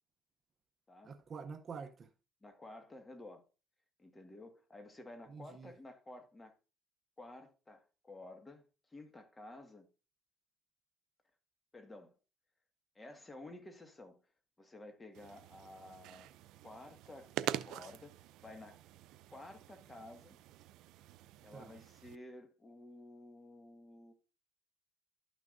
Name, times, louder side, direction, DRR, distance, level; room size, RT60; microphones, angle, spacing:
voice 1, 1.0-2.1 5.3-5.7 21.5-21.7, right 5 dB, 40° right, 0.7 m, -47 dB
voice 2, 2.4-3.5 4.0-6.5 7.2-9.9 11.7-12.1 12.9-14.2 14.6-16.3 16.6-17.3 17.6-18.8 19.3-20.4 21.4-24.1, left 2 dB, 15° left, 1.6 m, -53 dB
sound 1, 15.1-22.2, right 13 dB, 75° right, 0.4 m, -45 dB
12.0 x 6.2 x 2.6 m
cardioid pair, 100°, 0 cm